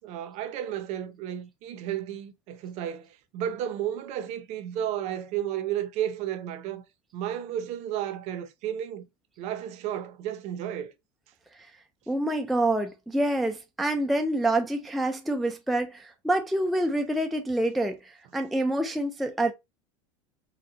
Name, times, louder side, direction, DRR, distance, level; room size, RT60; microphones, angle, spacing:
voice 1, 0.0-6.9 7.1-9.0 9.4-10.9, right 10 dB, 45° right, 0.7 m, -33 dB
voice 2, 12.1-19.5, right 1 dB, ahead, 0.3 m, -27 dB
4.3 x 2.2 x 3.7 m
supercardioid pair, 150°, 16 cm